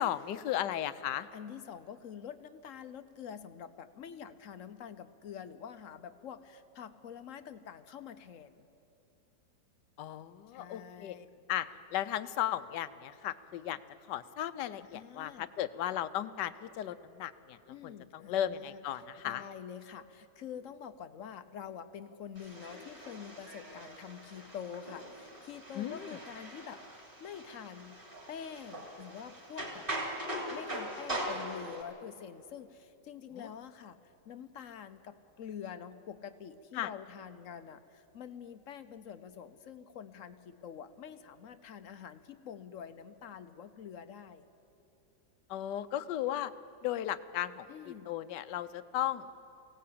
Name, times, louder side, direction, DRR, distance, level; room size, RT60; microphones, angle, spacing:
voice 1, 0.0-1.3 10.0-11.2 11.5-13.8 14.1-17.6 17.8-19.4 25.8-26.2 33.3-33.5 36.7-36.9 45.5-46.5 46.8-49.3, left 11 dB, 75° left, 13 dB, 1.3 m, -35 dB
voice 2, 1.3-8.7 10.5-11.4 14.8-15.5 17.7-28.0 28.3-29.9 30.5-34.0 34.3-44.5 47.7-48.1, left 8 dB, 60° left, 11 dB, 0.9 m, -46 dB
sound 1, 22.3-31.8, right 1 dB, 30° right, 3.7 m, -41 dB
23.5 x 17.0 x 8.6 m, 2.8 s
omnidirectional pair, 1.9 m